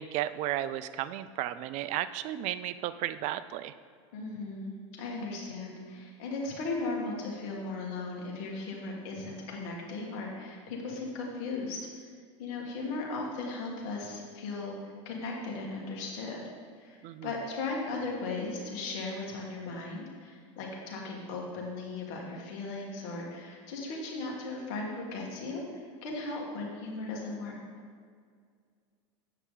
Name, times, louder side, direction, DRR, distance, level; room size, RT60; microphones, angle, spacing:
voice 1, 0.0-3.7 17.0-17.3, right 13 dB, 50° right, 14 dB, 0.4 m, -34 dB
voice 2, 4.1-12.1 12.4-14.8 15.1-16.5 16.8-27.6, left 3 dB, 60° left, -1 dB, 1.8 m, -37 dB
7.9 x 5.6 x 3.9 m, 2.1 s
hypercardioid pair, 105°, 16 cm